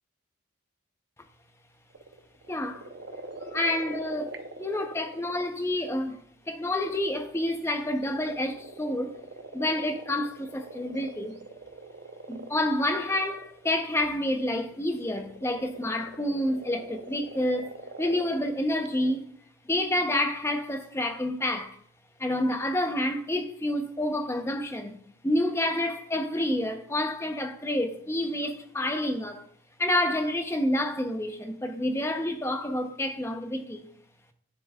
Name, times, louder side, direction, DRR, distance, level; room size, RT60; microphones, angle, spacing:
sound 1, 1.9-5.6 6.5-19.1, right 2 dB, 55° right, 0.8 m, -44 dB
voice 1, 2.5-2.8 3.5-4.3 4.6-6.2 6.5-9.2 9.5-11.4 12.3-19.3 19.7-21.8 22.2-25.0 25.2-29.4 29.8-33.9, left 1 dB, 15° left, 0.7 m, -28 dB
10.0 x 7.8 x 2.4 m
head